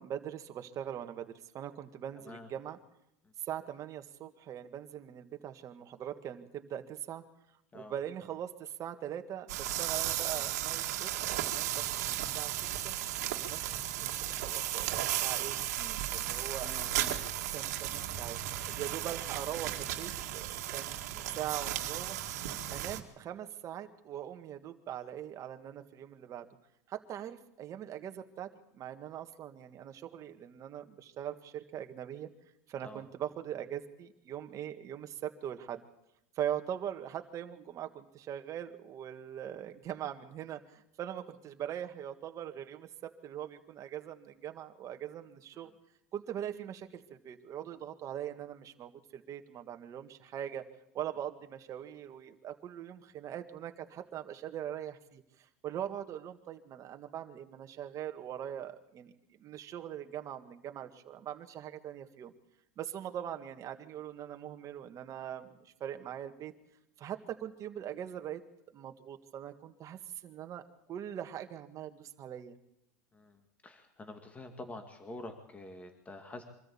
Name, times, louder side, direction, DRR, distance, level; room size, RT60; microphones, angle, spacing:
voice 1, 0.0-2.8 3.4-7.2 7.7-11.1 11.4-12.5 12.8-13.0 13.4-13.7 14.0-16.7 17.5-18.4 18.7-22.2 22.7-26.5 26.9-32.3 32.7-35.8 36.4-45.7 46.1-50.6 50.9-62.3 62.8-66.5 67.0-68.4 68.7-70.6 70.9-72.6, right 10 dB, 40° right, 6 dB, 1.9 m, -41 dB
sound 1, 9.5-23.0, right 13 dB, 80° right, 2.0 m, -35 dB
voice 2, 16.6-17.2 32.8-33.0 73.1-76.4, left 2 dB, 15° left, 6 dB, 2.2 m, -47 dB
24.5 x 13.5 x 8.6 m, 0.82 s
supercardioid pair, 115°, 9 cm